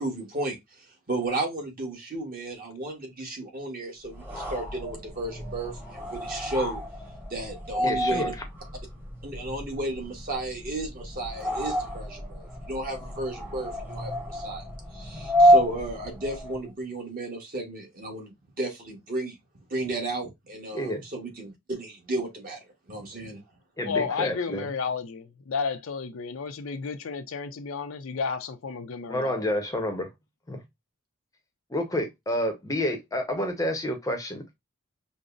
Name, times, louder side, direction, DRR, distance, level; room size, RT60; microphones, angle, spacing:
voice 1, 0.0-6.8 7.3-8.3 9.2-19.4 19.7-22.6 22.9-23.4, right 2 dB, 40° right, 1.1 m, -34 dB
sound 1, 4.1-16.7, equal, 10° right, 0.9 m, -28 dB
voice 2, 7.8-8.3 20.7-21.0 23.8-24.7 29.1-30.1 30.5-30.6 31.7-34.6, left 1 dB, 15° left, 0.6 m, -29 dB
voice 3, 23.8-29.5, left 5 dB, 70° left, 0.5 m, -32 dB
5.1 x 2.0 x 2.4 m
head